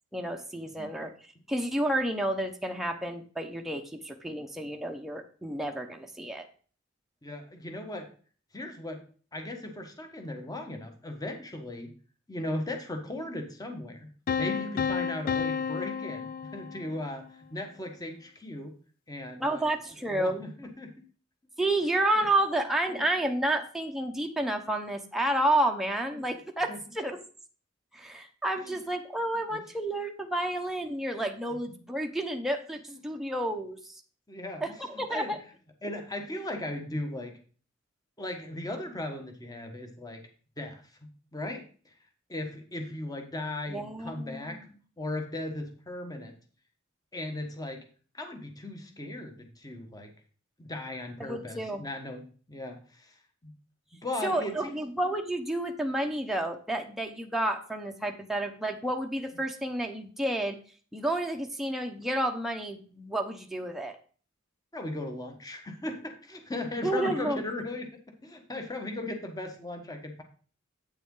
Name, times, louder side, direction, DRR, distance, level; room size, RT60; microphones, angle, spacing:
voice 1, 0.1-1.1 1.5-6.4 19.4-20.5 21.6-27.2 27.9-34.0 34.6-34.7 35.0-35.4 43.7-44.6 51.2-51.8 54.2-60.6 60.9-63.9 66.8-67.4, right 1 dB, ahead, 2 dB, 0.8 m, -30 dB
voice 2, 7.2-8.1 8.5-9.0 9.3-11.9 12.3-14.1 14.4-18.7 19.1-19.7 20.1-21.0 22.2-22.3 22.9-23.0 26.1-26.2 26.7-26.8 28.6-28.8 29.5-29.6 31.7-31.8 32.9-33.2 34.3-35.4 35.8-37.3 38.2-40.2 40.6-42.0 42.3-44.6 45.0-46.4 47.1-47.8 48.1-50.1 50.6-52.2 52.5-53.1 53.4-53.5 53.9-54.8 59.3-59.4 64.7-67.9 68.2-70.2, left 1 dB, 20° left, 4 dB, 1.3 m, -37 dB
sound 1, 14.3-17.2, left 6 dB, 45° left, 0.3 m, -31 dB
8.6 x 6.7 x 3.8 m, 0.41 s
head